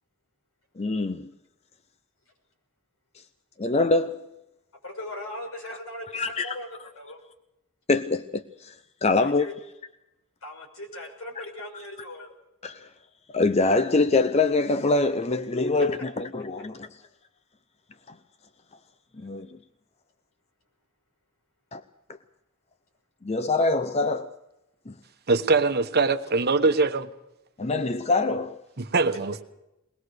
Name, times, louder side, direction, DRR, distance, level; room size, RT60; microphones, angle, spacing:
voice 1, 0.8-1.2 3.6-4.2 6.1-6.5 7.9-8.4 9.0-9.5 12.6-12.7 13.3-16.8 19.2-19.5 21.7-21.8 23.3-24.3 27.6-28.6, left 3 dB, 30° left, 0.7 m, -24 dB
voice 2, 4.8-6.7 7.0-7.2 9.2-9.5 10.4-12.3, left 1 dB, 80° left, 5.8 m, -39 dB
voice 3, 25.3-27.1 28.8-29.5, right 3 dB, 50° right, 1.1 m, -22 dB
22.0 x 19.5 x 6.6 m
head